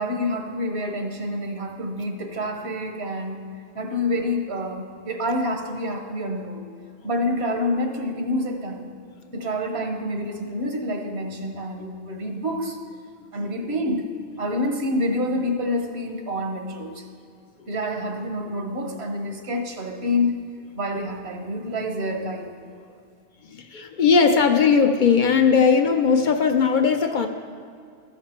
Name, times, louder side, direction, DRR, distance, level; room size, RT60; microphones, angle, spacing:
voice 1, 0.0-3.4 3.7-6.6 7.0-8.9 9.3-12.8 13.3-14.1 14.4-17.1 17.7-20.4 20.7-22.5, left 1 dB, 85° right, 3 dB, 1.3 m, -27 dB
voice 2, 23.5-27.3, left 5 dB, 55° left, 5 dB, 0.6 m, -18 dB
14.0 x 5.9 x 4.3 m, 2.2 s
omnidirectional pair, 1.1 m